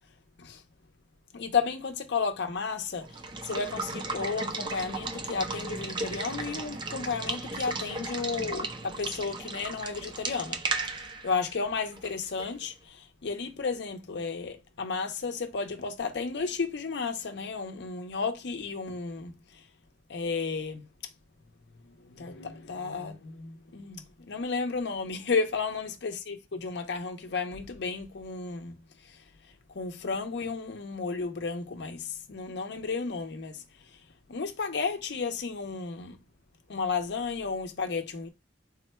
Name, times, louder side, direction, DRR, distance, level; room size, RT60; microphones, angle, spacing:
voice 1, 1.3-10.6 11.0-19.6 20.1-20.9 22.0-28.8 29.0-29.2 29.7-33.6 34.3-36.2 36.7-38.3, left 4 dB, 65° left, 0.6 m, -33 dB
Water / Water tap faucet / Liquid, 3.0-12.6, right 3 dB, 25° right, 0.4 m, -35 dB
3.6 x 2.2 x 4.2 m
head